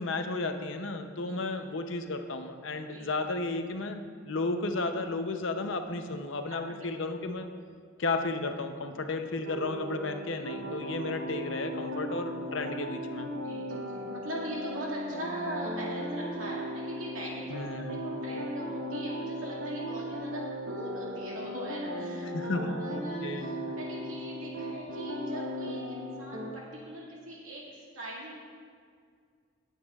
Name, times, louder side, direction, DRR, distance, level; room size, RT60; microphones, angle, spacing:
voice 1, 0.0-7.5 8.0-13.3 17.5-18.0 22.2-23.5, left 3 dB, 65° left, 6 dB, 0.7 m, -33 dB
sound 1, 9.4-26.5, equal, 60° right, 1.1 m, -37 dB
voice 2, 13.3-27.7 27.9-28.4, right 1 dB, 90° right, -5 dB, 2.1 m, -41 dB
18.5 x 8.3 x 2.4 m, 2.1 s
head